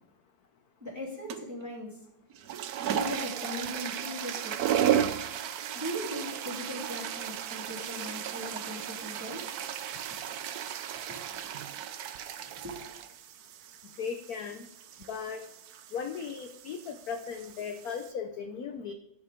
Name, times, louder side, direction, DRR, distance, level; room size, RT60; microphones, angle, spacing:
voice 1, 0.8-2.0 2.9-5.1 5.7-9.4 11.1-11.2 12.4-12.8, left 1 dB, 10° right, -4 dB, 2.9 m, -39 dB
sound 1, 1.3-1.6 2.3-18.1, right 10 dB, 70° right, 0.9 m, -35 dB
voice 2, 14.0-14.7 15.1-15.4 15.9-18.9, left 6 dB, 65° left, 6 dB, 0.9 m, -37 dB
12.0 x 6.6 x 3.5 m, 0.81 s
omnidirectional pair, 2.3 m